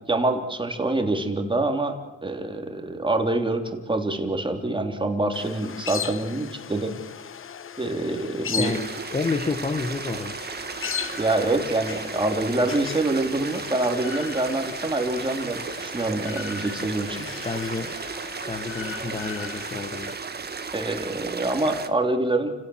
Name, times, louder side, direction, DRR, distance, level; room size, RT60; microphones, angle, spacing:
voice 1, 0.0-2.0 2.2-6.9 7.8-8.7 11.2-17.3 20.7-22.5, right 2 dB, 15° right, 4 dB, 3.2 m, -26 dB
sound 1, 5.3-20.1, left 8 dB, 45° left, 1.0 m, -38 dB
voice 2, 8.6-10.4 17.4-18.0 18.5-20.1, left 3 dB, 20° left, 8 dB, 1.3 m, -29 dB
sound 2, 8.6-21.9, right 5 dB, 35° right, 1.7 m, -35 dB
29.5 x 16.5 x 7.9 m, 1.2 s
cardioid pair, 90°, 30 cm